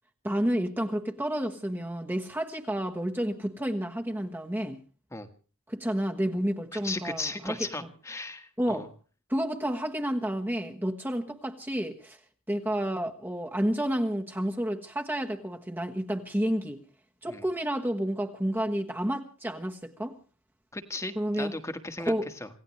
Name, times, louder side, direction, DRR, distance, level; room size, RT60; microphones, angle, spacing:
voice 1, 0.2-4.8 5.7-7.9 8.6-8.9 9.3-12.2 12.5-16.8 17.2-20.1 21.1-21.5 22.0-22.3, equal, 10° right, 1.2 m, -30 dB
voice 2, 6.7-8.9 17.3-17.4 20.7-22.1 22.4-22.5, left 2 dB, 15° left, 1.5 m, -36 dB
27.0 x 17.0 x 3.2 m
head